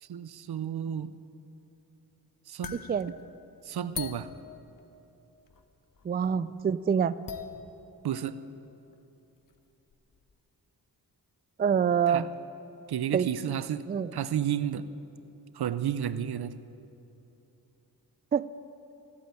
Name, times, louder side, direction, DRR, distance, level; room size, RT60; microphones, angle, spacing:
voice 1, 0.0-1.1 2.5-2.8 3.6-4.3 8.0-8.4 12.1-12.3 12.9-14.9 15.5-16.6, right 9 dB, 70° right, 15 dB, 0.7 m, -32 dB
sound 1, 2.6-5.2 5.5-6.3 6.6-6.7 7.1-8.2 8.9-9.0 9.5-9.6 9.9-10.3, left 6 dB, 55° left, 1.0 m, -43 dB
voice 2, 6.0-7.2 11.6-12.3 13.1-13.3 13.9-14.1 18.3-18.5, right 7 dB, 25° right, 16 dB, 0.4 m, -26 dB
15.0 x 8.6 x 8.9 m, 3.0 s
cardioid pair, 60°, 40 cm